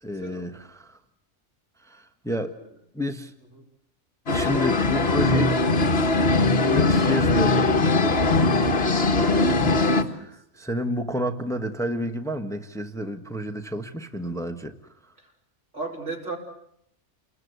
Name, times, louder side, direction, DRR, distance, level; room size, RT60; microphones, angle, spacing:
voice 1, 0.0-1.0 1.8-2.5 2.9-3.3 4.3-5.6 6.6-8.2 9.3-14.8, left 1 dB, 5° left, 6 dB, 1.4 m, -30 dB
voice 2, 2.3-2.7 3.5-3.6 9.7-10.6 15.2-15.3 15.7-16.4, right 3 dB, 75° right, 0 dB, 5.3 m, -37 dB
sound 1, 4.3-10.0, left 2 dB, 55° left, 1.9 m, -21 dB
29.5 x 21.0 x 8.1 m, 0.74 s
omnidirectional pair, 1.2 m